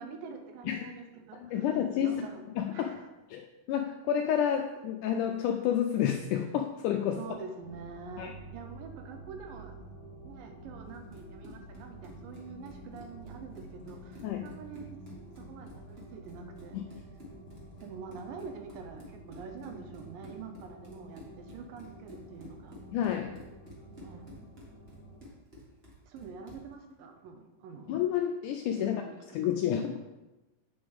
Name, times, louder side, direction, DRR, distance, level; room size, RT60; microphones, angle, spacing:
voice 1, 0.0-2.4 2.7-3.1 7.2-9.8 10.2-15.0 15.4-16.8 17.8-22.8 23.7-24.3 26.0-28.0 28.8-29.2, right 5 dB, 80° right, 5 dB, 2.4 m, -46 dB
voice 2, 1.4-2.1 2.6-3.0 3.3-7.2 8.2-8.3 14.2-14.5 16.7-16.8 22.9-23.4 27.9-29.0 29.3-30.0, left 9 dB, 85° left, 3 dB, 1.8 m, -30 dB
sound 1, 7.6-25.2, right 1 dB, 40° left, 1.8 m, -50 dB
Run, 10.9-26.7, equal, 40° right, 0.8 m, -52 dB
7.9 x 7.1 x 3.5 m, 1.1 s
omnidirectional pair, 4.1 m